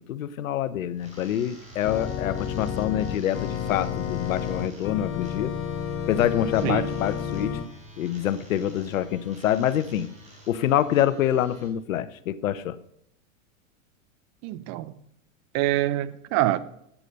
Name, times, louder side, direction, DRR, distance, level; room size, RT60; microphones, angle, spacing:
voice 1, 0.0-5.5 6.1-7.6 8.0-10.1 10.5-12.8, left 11 dB, 75° left, 16 dB, 0.9 m, -26 dB
sound 1, 0.9-11.7, equal, 15° right, 4.4 m, -48 dB
Organ, 1.8-7.7, left 8 dB, 30° left, 1.0 m, -31 dB
voice 2, 14.4-14.9 15.5-16.6, right 15 dB, 40° right, 16 dB, 0.8 m, -25 dB
8.9 x 8.5 x 6.5 m, 0.74 s
hypercardioid pair, 110°, 40 cm